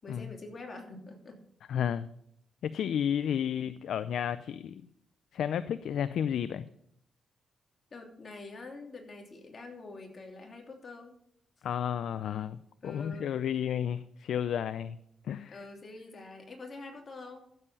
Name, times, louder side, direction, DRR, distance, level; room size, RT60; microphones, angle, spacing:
voice 1, 0.0-1.4 7.9-11.1 12.8-13.3 15.5-17.5, left 3 dB, 45° left, 2 dB, 3.0 m, -46 dB
voice 2, 1.7-2.1 2.6-4.8 5.3-6.6 11.6-15.0 15.2-15.6, left 9 dB, 80° left, 13 dB, 0.5 m, -32 dB
14.5 x 7.7 x 5.4 m, 0.70 s
cardioid pair, 80°, 0 cm